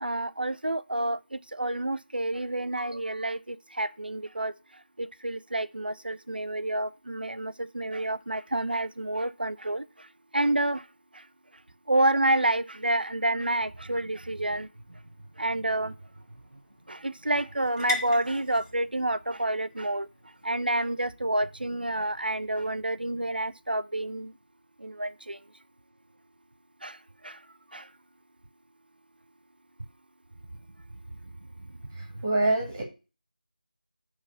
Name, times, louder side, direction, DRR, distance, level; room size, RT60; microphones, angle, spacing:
voice 1, 0.0-4.5 5.0-10.1 10.3-10.9 11.1-11.2 11.9-15.0 15.4-16.0 16.9-20.1 20.4-24.3 24.8-25.4 26.8-27.0 27.2-27.4 27.7-27.9 31.2-31.3 31.6-32.2, right 1 dB, 80° right, 0.6 m, -29 dB
sound 1, 14.6-22.1, left 2 dB, 20° left, 1.9 m, -42 dB
voice 2, 32.2-32.8, right 2 dB, 20° right, 1.5 m, -24 dB
9.0 x 3.2 x 6.7 m
figure-of-eight pair, 165°, 5 cm